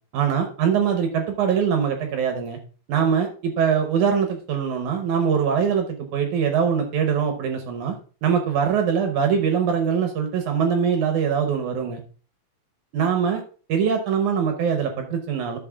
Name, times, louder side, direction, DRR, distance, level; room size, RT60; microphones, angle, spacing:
voice 1, 0.1-2.6 2.9-8.0 8.2-12.0 12.9-13.4 13.7-15.6, right 7 dB, 75° right, 4 dB, 1.9 m, -22 dB
12.5 x 6.6 x 2.3 m, 0.40 s
omnidirectional pair, 4.4 m